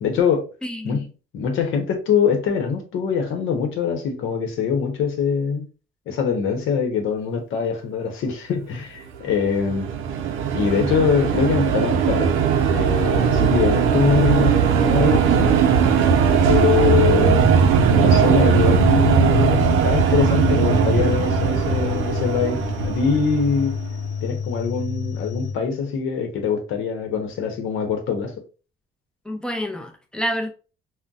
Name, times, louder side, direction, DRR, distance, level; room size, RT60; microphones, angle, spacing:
voice 1, 0.0-0.5 0.8-1.0 1.3-5.7 6.1-9.9 10.5-12.4 12.7-15.6 16.5-17.5 17.9-23.8 24.2-28.3, left 6 dB, 80° left, 0.8 m, -23 dB
voice 2, 0.6-1.0 29.3-30.5, equal, 5° left, 0.6 m, -28 dB
sound 1, 9.4-23.9, right 6 dB, 90° right, 0.5 m, -19 dB
sound 2, 19.6-25.5, left 6 dB, 50° left, 0.6 m, -30 dB
3.9 x 2.1 x 2.3 m
cardioid pair, 90°, 20 cm